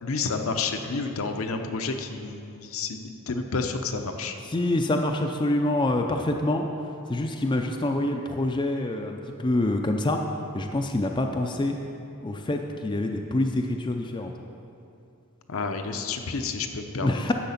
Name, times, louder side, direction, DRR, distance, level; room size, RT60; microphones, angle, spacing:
voice 1, 0.0-4.4 15.5-17.3, left 4 dB, 65° left, 5 dB, 0.7 m, -30 dB
voice 2, 4.5-6.7 7.1-10.2 10.5-11.8 12.2-14.3 17.0-17.3, left 1 dB, 20° left, 3 dB, 0.4 m, -26 dB
10.5 x 7.4 x 5.7 m, 2.7 s
head